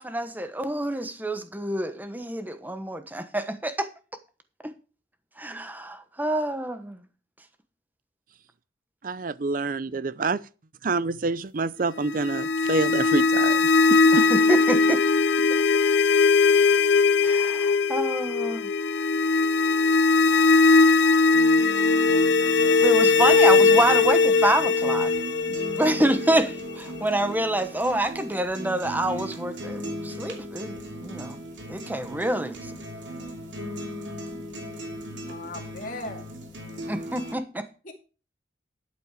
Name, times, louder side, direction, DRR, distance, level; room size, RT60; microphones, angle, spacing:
voice 1, 0.0-3.9 5.4-7.0 14.1-15.0 17.2-18.7 22.8-25.1 25.5-31.4 31.7-32.6 36.9-37.7, right 1 dB, 10° right, 1.1 m, -27 dB
voice 2, 9.0-10.4 10.8-14.3, right 3 dB, 50° right, 0.6 m, -27 dB
sound 1, 12.1-27.0, left 4 dB, 70° left, 0.6 m, -20 dB
sound 2, 21.3-37.3, right 1 dB, 85° right, 2.7 m, -37 dB
voice 3, 35.3-36.3 37.8-37.9, left 2 dB, 50° left, 2.3 m, -37 dB
12.0 x 8.5 x 4.9 m
head